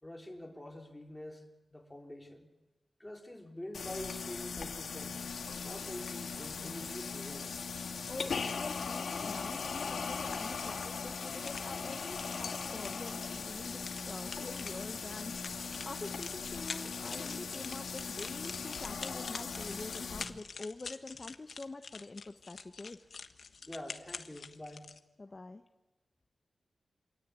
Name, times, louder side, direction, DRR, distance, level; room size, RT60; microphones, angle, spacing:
voice 1, 0.0-2.5 3.0-5.2 5.6-7.6 23.6-24.9, left 1 dB, 10° left, 1 dB, 3.8 m, -46 dB
sound 1, 3.7-20.2, left 5 dB, 90° left, 2.0 m, -39 dB
voice 2, 8.1-23.0 25.2-25.6, left 3 dB, 35° left, 6 dB, 1.0 m, -46 dB
sound 2, 11.3-25.0, left 5 dB, 65° left, 1.3 m, -47 dB
27.5 x 25.0 x 8.3 m, 1.1 s
wide cardioid pair, 100°, 0 cm